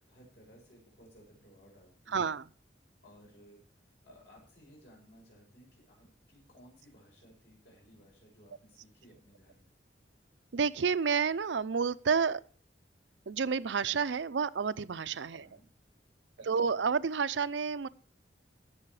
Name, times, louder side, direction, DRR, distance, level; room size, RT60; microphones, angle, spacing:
voice 1, 0.1-2.3 3.0-9.7 15.3-15.7 16.4-16.6, equal, 70° left, -2 dB, 6.8 m, -59 dB
voice 2, 2.1-2.4 10.5-12.4 13.3-15.5 16.4-17.9, right 5 dB, 80° right, 15 dB, 0.5 m, -30 dB
17.5 x 7.0 x 4.8 m, 0.43 s
head